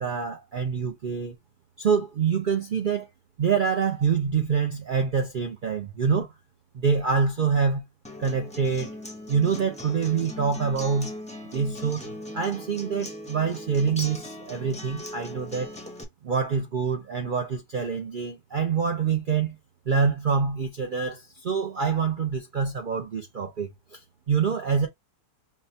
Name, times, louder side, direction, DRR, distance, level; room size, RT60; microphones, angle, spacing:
voice 1, 0.0-1.3 1.8-3.1 3.4-6.3 6.7-7.9 8.2-8.9 9.3-11.1 11.4-12.0 12.3-15.8 16.2-19.6 19.9-24.0 24.3-24.9, right 6 dB, 65° right, 0.5 m, -26 dB
Acoustic guitar, 8.0-16.0, left 1 dB, 5° left, 0.5 m, -39 dB
5.6 x 2.1 x 2.7 m
omnidirectional pair, 1.6 m